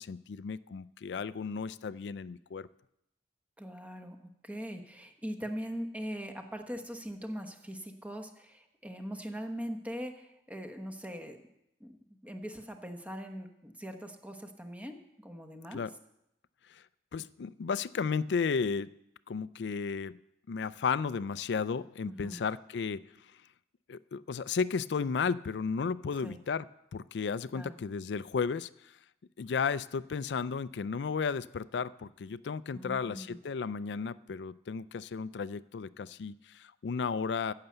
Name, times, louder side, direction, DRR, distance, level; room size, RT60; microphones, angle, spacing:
voice 1, 0.0-2.7 15.7-15.9 16.7-16.8 17.1-18.9 19.3-20.2 20.5-23.0 23.9-26.7 26.9-28.9 29.4-37.5, left 5 dB, 70° left, 17 dB, 0.4 m, -34 dB
voice 2, 3.6-4.2 4.4-11.4 11.8-11.9 12.2-15.0 15.2-15.8 22.0-22.4 26.2-26.4 27.5-27.8 32.7-33.4, equal, 10° right, 5 dB, 1.1 m, -41 dB
14.5 x 6.6 x 7.9 m, 0.84 s
head